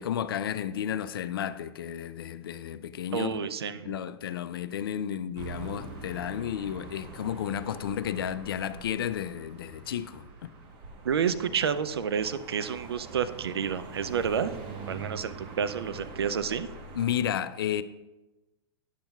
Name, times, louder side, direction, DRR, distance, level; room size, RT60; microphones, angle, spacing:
voice 1, 0.0-3.5 3.9-10.5 17.0-17.8, left 9 dB, 60° left, 0.4 m, -32 dB
voice 2, 3.1-4.0 11.0-14.5 14.9-16.7, right 7 dB, 70° right, 0.5 m, -29 dB
sound 1, 5.4-17.3, right 4 dB, 35° right, 1.1 m, -44 dB
10.0 x 6.9 x 2.3 m
figure-of-eight pair, 105°, 13 cm